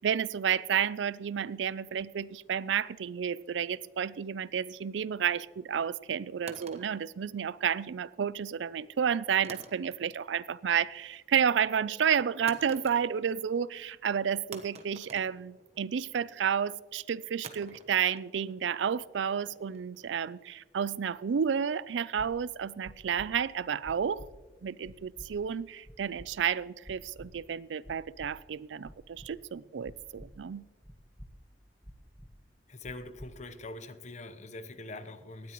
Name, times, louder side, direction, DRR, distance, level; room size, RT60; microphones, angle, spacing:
voice 1, 0.0-24.2 24.6-30.6, right 7 dB, 85° right, 20 dB, 0.4 m, -31 dB
sound 1, 6.5-7.9 9.4-10.3 10.6-11.1 12.5-13.4 13.7-13.8 14.5-16.0 17.4-20.5, right 4 dB, 40° right, 1.1 m, -50 dB
sound 2, 22.2-22.3 22.8-23.3 23.8-24.3 24.8-25.3 25.8-26.3 26.8-27.3 27.8-28.3 28.8-29.3 29.8-30.3 30.8-31.3 31.8-32.3 32.8-33.3, equal, 5° right, 1.1 m, -48 dB
voice 2, 32.7-35.5, left 2 dB, 40° left, 11 dB, 0.9 m, -43 dB
18.5 x 13.0 x 3.0 m, 1.3 s
head